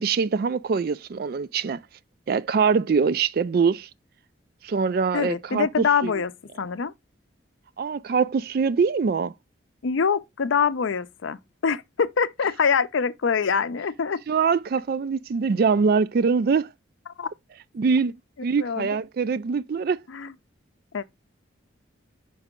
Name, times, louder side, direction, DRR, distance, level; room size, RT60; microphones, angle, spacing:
voice 1, 0.0-1.8 2.3-3.9 4.6-6.1 7.8-9.3 14.3-16.7 17.8-18.2 18.4-20.0, right 5 dB, 50° right, 0.3 m, -23 dB
voice 2, 5.1-6.3 6.6-6.9 9.8-14.2 17.2-17.3 18.6-18.9 20.1-20.3 20.9-21.0, left 6 dB, 80° left, 0.5 m, -24 dB
5.4 x 4.9 x 3.6 m
head